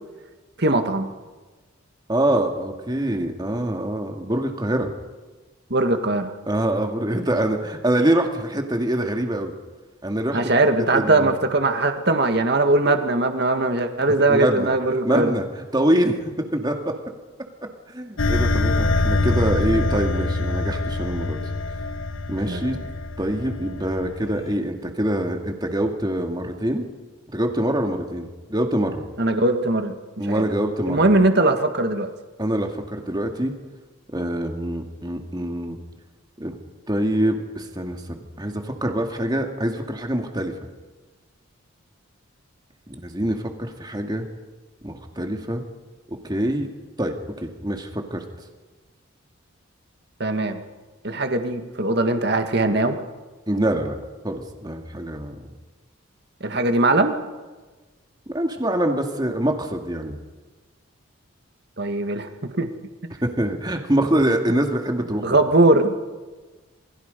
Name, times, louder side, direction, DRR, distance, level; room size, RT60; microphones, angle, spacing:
voice 1, 0.6-1.1 5.7-6.3 10.3-15.3 22.5-22.6 29.2-30.4 30.9-32.1 50.2-50.6 51.0-53.0 56.4-57.2 61.8-62.7 65.2-66.0, right 2 dB, 50° right, 6 dB, 1.9 m, -20 dB
voice 2, 2.1-4.9 6.5-9.5 10.0-10.4 10.9-11.3 14.2-15.5 15.7-16.9 17.9-21.4 22.3-22.8 23.2-26.9 27.3-29.0 30.2-31.1 32.4-33.5 34.1-35.8 36.4-36.6 36.9-40.5 42.9-44.3 44.8-45.6 46.1-46.7 47.0-48.2 53.5-54.0 54.2-55.4 58.3-60.2 63.2-65.4, right 1 dB, 20° right, 3 dB, 2.3 m, -25 dB
sound 1, 18.2-24.5, left 2 dB, 75° left, 1.2 m, -24 dB
28.0 x 21.5 x 5.3 m, 1.3 s
head